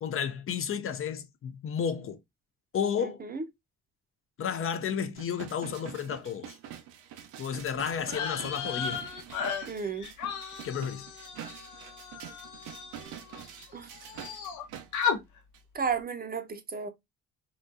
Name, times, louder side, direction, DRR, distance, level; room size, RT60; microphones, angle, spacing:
voice 1, 0.0-2.2 2.7-3.2 4.4-6.6 7.4-9.0 10.6-11.1, left 7 dB, 45° left, 0.5 m, -32 dB
voice 2, 3.0-3.4 9.7-10.1 13.7-13.9 15.7-16.9, right 5 dB, 30° right, 0.6 m, -33 dB
sound 1, 5.1-15.1 15.5-15.6, right 10 dB, 85° right, 0.6 m, -46 dB
sound 2, 8.0-13.7 13.9-14.6 14.9-15.2, left 6 dB, 80° left, 0.8 m, -35 dB
3.8 x 2.3 x 2.4 m
cardioid pair, 90°, 30 cm